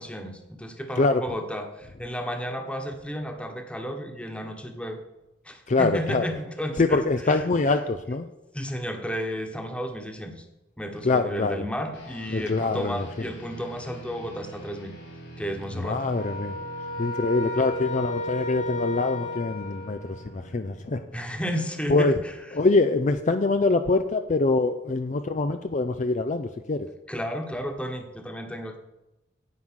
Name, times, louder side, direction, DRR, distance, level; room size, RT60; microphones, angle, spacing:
voice 1, 0.0-5.0 5.4-7.8 8.5-10.4 10.8-14.9 15.4-16.0 21.1-22.3 27.1-28.8, equal, 5° left, 5 dB, 1.3 m, -33 dB
voice 2, 5.7-6.2 6.8-8.3 11.0-11.7 12.3-13.1 15.7-16.6 17.0-21.3 21.9-22.2 22.5-26.9, left 3 dB, 40° left, 8 dB, 0.5 m, -24 dB
sound 1, 11.9-23.6, right 1 dB, 65° left, 4.3 m, -46 dB
sound 2, 16.1-20.5, left 1 dB, 85° left, 4.7 m, -33 dB
9.6 x 9.0 x 6.3 m, 0.96 s
head